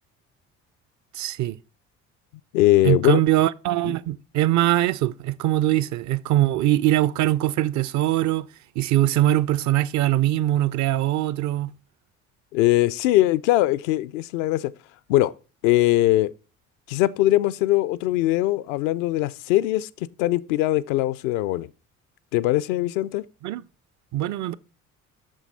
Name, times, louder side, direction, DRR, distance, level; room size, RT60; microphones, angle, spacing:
voice 1, 1.1-1.6 2.8-8.5 8.8-11.7 23.4-23.6 24.1-24.5, right 14 dB, 45° right, 0.5 m, -22 dB
voice 2, 2.5-3.2 12.5-14.7 15.1-15.3 15.6-16.3 16.9-19.9 20.2-21.7 22.3-23.2, left 16 dB, 65° left, 0.5 m, -21 dB
6.3 x 6.3 x 4.1 m
figure-of-eight pair, 50°, 41 cm